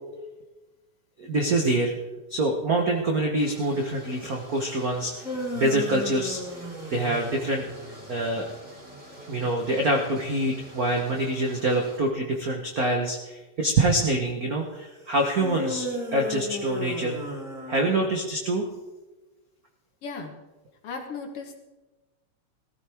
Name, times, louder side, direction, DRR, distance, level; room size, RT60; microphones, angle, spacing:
voice 1, 1.2-1.9 2.3-6.4 6.9-7.7 8.1-8.5 9.3-17.1 17.7-18.7, right 1 dB, 60° right, 1 dB, 0.9 m, -25 dB
sound 1, 3.4-12.0, right 1 dB, 20° right, 3.3 m, -47 dB
sound 2, 5.0-8.2 15.4-18.3, left 1 dB, ahead, 3.2 m, -35 dB
voice 2, 20.0-20.4 20.8-21.6, left 4 dB, 55° left, 3 dB, 2.1 m, -36 dB
19.0 x 14.0 x 3.5 m, 1.1 s
omnidirectional pair, 3.4 m